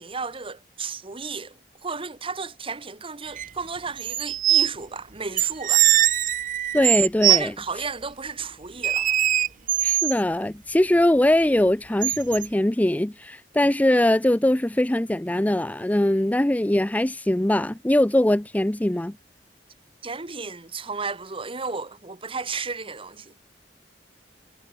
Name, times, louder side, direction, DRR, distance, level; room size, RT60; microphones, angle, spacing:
voice 1, 0.0-1.5 1.8-5.9 7.3-9.2 20.0-23.4, right 4 dB, 30° right, 1.7 m, -33 dB
sound 1, 3.4-3.5 4.0-4.7 5.4-7.4 8.8-10.2 12.0-12.5, right 12 dB, 50° right, 0.9 m, -21 dB
voice 2, 6.7-7.5 9.8-19.1, left 1 dB, 10° left, 0.5 m, -21 dB
head